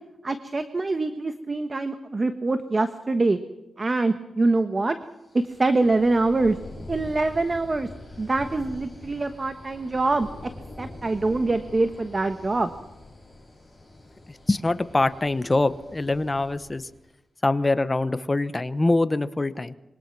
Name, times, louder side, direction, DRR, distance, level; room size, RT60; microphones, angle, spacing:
voice 1, 0.2-3.4 3.8-5.0 5.3-6.6 6.9-7.9 8.2-10.3 10.8-12.7, right 3 dB, 30° right, 9 dB, 1.3 m, -24 dB
sound 1, 5.2-17.0, left 2 dB, 5° left, 7.7 m, -44 dB
voice 2, 14.5-16.9 17.4-19.7, left 2 dB, 20° left, 12 dB, 1.1 m, -24 dB
26.0 x 23.5 x 6.1 m, 0.98 s
wide cardioid pair, 125°, 0 cm